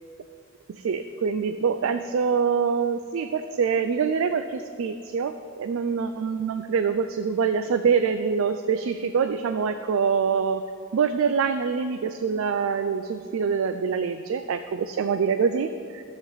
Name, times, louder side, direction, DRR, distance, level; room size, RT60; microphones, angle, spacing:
voice 1, 0.7-10.6 10.9-16.0, right 6 dB, 75° right, 9 dB, 0.4 m, -25 dB
12.5 x 7.2 x 4.0 m, 2.3 s
head